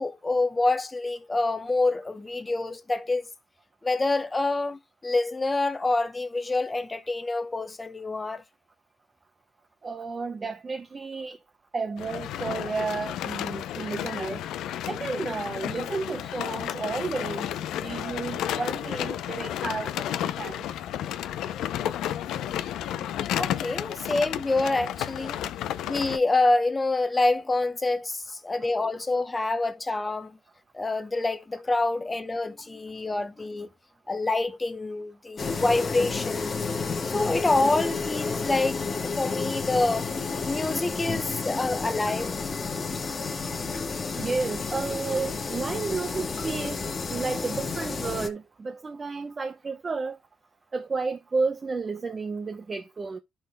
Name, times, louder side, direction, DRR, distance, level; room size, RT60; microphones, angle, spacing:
voice 1, 0.0-3.2 3.8-8.4 23.3-25.4 25.9-30.4 30.7-33.7 34.1-36.6 37.0-38.8 39.0-40.1 40.4-42.4, left 2 dB, 20° left, 0.8 m, -26 dB
voice 2, 9.8-11.4 11.7-14.4 14.9-20.6 25.4-25.5 43.9-46.8 47.1-50.2 50.7-53.2, right 4 dB, 35° right, 0.8 m, -32 dB
sound 1, 12.0-26.2, left 11 dB, 85° left, 0.5 m, -32 dB
sound 2, 35.4-48.3, left 4 dB, 40° left, 1.2 m, -31 dB
12.0 x 5.7 x 2.2 m
cardioid pair, 90°, 0 cm